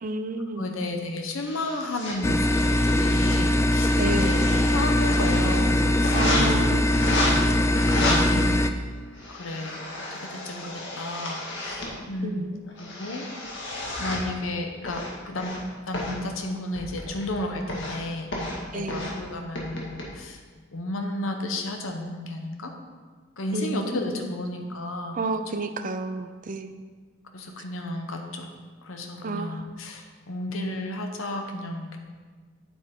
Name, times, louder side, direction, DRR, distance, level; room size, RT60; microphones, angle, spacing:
voice 1, 0.0-0.7 4.0-4.5 6.1-6.9 12.2-12.6 18.7-19.1 23.5-24.1 25.1-26.7 29.2-29.7, right 2 dB, 40° right, 8 dB, 0.5 m, -31 dB
voice 2, 0.6-2.6 3.0-4.4 4.7-6.6 7.2-8.5 9.3-9.8 10.1-12.5 12.8-13.3 14.0-15.6 15.9-18.3 18.7-20.4 20.7-22.7 23.4-25.2 27.3-28.5 28.8-32.0, left 1 dB, 90° left, 4 dB, 0.9 m, -33 dB
sound 1, 1.4-2.1 2.5-3.4 3.8-5.6 6.0-6.4 6.9-7.3 7.8-8.2 8.9-11.9 12.5-14.3 14.8-15.6 15.9-16.2 16.8-17.3 17.7-18.0 18.3-18.6 18.9-19.1 19.6-20.0, left 2 dB, 65° left, 2.0 m, -32 dB
sound 2, 2.2-8.7, left 1 dB, 15° left, 0.3 m, -22 dB
8.9 x 8.4 x 3.7 m, 1.4 s
head